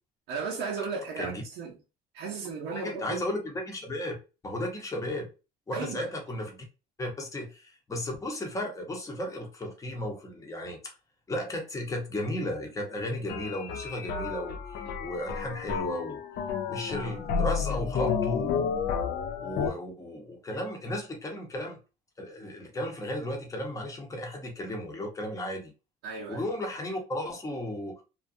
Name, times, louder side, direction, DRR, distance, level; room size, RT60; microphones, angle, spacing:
voice 1, 0.3-1.8 2.1-3.2 5.7-6.1 26.0-26.5, right 5 dB, 85° right, 0.6 m, -35 dB
voice 2, 2.8-4.2 4.4-5.3 5.7-6.6 7.0-10.9 11.3-16.2 16.7-18.7 19.4-21.8 22.2-25.7 26.3-28.0, left 1 dB, 20° left, 0.8 m, -34 dB
sound 1, 13.3-19.7, left 6 dB, 70° left, 0.4 m, -31 dB
2.5 x 2.2 x 2.5 m
cardioid pair, 110°, 17 cm